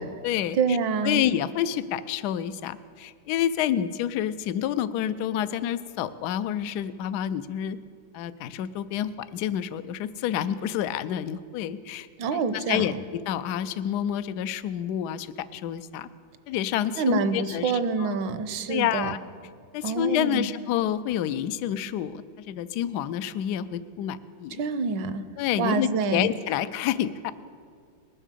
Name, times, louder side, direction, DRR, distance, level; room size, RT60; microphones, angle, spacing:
voice 1, 0.0-0.8 1.0-7.8 8.1-16.1 16.5-17.7 18.0-18.2 18.7-19.2 19.7-24.6 25.4-27.3, left 10 dB, 75° left, 14 dB, 1.0 m, -28 dB
voice 2, 0.5-1.2 12.2-12.8 17.0-19.2 19.8-20.5 24.6-25.2 25.6-26.3, right 5 dB, 75° right, 11 dB, 1.4 m, -26 dB
20.0 x 7.4 x 6.7 m, 2.1 s
omnidirectional pair, 2.1 m